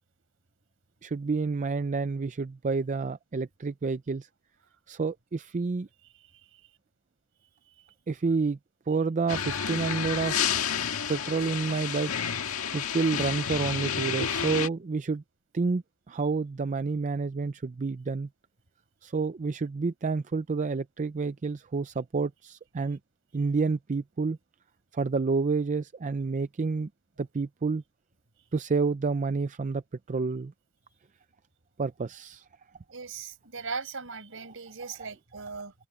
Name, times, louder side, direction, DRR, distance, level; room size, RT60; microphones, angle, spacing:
voice 1, 1.0-4.3 4.9-5.9 8.1-8.6 8.9-10.6 11.1-12.1 12.7-15.2 15.5-18.3 19.0-23.0 23.3-24.4 24.9-26.9 27.2-27.8 28.5-29.8 30.1-30.5 31.8-32.4, right 4 dB, 35° right, 0.4 m, -29 dB
sound 1, 9.3-14.7, left 7 dB, 85° left, 1.7 m, -30 dB
voice 2, 32.9-35.7, right 4 dB, 65° right, 5.6 m, -39 dB
head